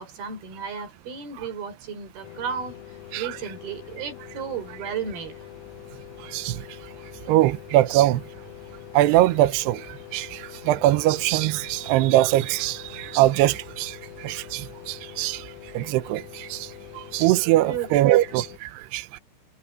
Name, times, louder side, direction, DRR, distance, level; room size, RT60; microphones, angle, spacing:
voice 1, 0.0-5.5 17.5-18.2, right 7 dB, 50° right, 5.3 m, -34 dB
sound 1, 2.2-18.6, left 14 dB, 85° left, 3.8 m, -44 dB
voice 2, 6.2-6.6 7.3-8.2 8.9-9.9 10.1-16.7 17.0-19.2, right 15 dB, 80° right, 2.4 m, -22 dB
omnidirectional pair, 5.8 m